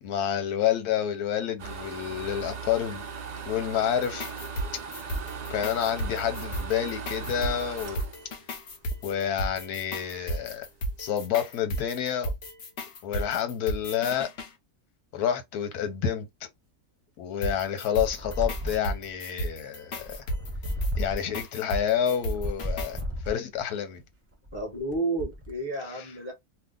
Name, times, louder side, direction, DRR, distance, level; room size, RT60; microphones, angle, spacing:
voice 1, 0.0-3.0 3.5-4.3 5.5-8.0 9.0-10.7 11.0-12.3 13.0-14.3 15.1-16.3 17.2-20.2 21.0-23.0 23.3-24.0 25.9-26.0, left 9 dB, 80° left, 1.2 m, -29 dB
sound 1, 1.6-9.4 9.8-9.9 10.3-10.4 10.6-11.0, right 6 dB, 75° right, 0.3 m, -38 dB
sound 2, 4.0-14.5 17.4-23.0, right 1 dB, 50° left, 0.9 m, -35 dB
sound 3, 17.9-19.1 19.9-21.4 22.2-23.6 24.3-25.5, equal, 15° right, 0.5 m, -33 dB
voice 2, 24.5-26.3, right 2 dB, 20° left, 0.8 m, -31 dB
2.8 x 2.4 x 3.5 m
omnidirectional pair, 1.6 m